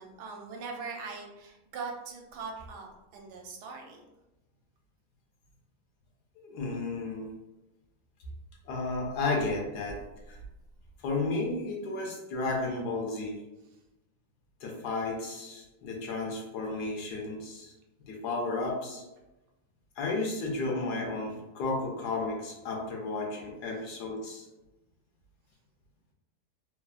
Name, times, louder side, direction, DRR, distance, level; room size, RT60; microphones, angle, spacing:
voice 1, 0.0-4.0, right 4 dB, 80° right, 1 dB, 1.1 m, -41 dB
voice 2, 6.4-7.3 8.7-10.0 10.3-10.4 11.0-13.4 14.6-17.7 18.0-19.0 20.0-24.4, left 3 dB, 75° left, 0 dB, 1.2 m, -33 dB
3.3 x 2.0 x 2.4 m, 0.97 s
omnidirectional pair, 1.8 m